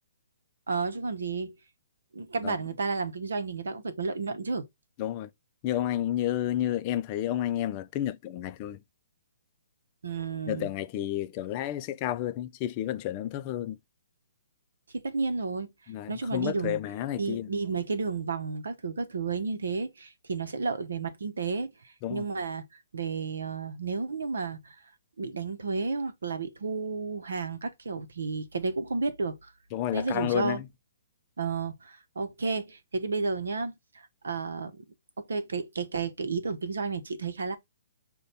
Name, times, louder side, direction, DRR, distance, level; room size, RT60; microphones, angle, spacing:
voice 1, 0.7-1.5 2.1-4.7 10.0-10.7 14.9-15.7 16.1-16.8 17.2-21.7 22.1-22.6 22.9-24.7 25.2-29.4 29.9-30.6 31.4-33.8 34.2-34.8 35.3-37.6, right 4 dB, 80° right, 0.7 m, -32 dB
voice 2, 5.0-5.3 5.6-8.8 10.5-13.8 15.9-17.5 22.0-22.2 29.7-30.6, left 12 dB, 35° left, 0.4 m, -31 dB
5.2 x 2.2 x 4.1 m
hypercardioid pair, 140°, 0 cm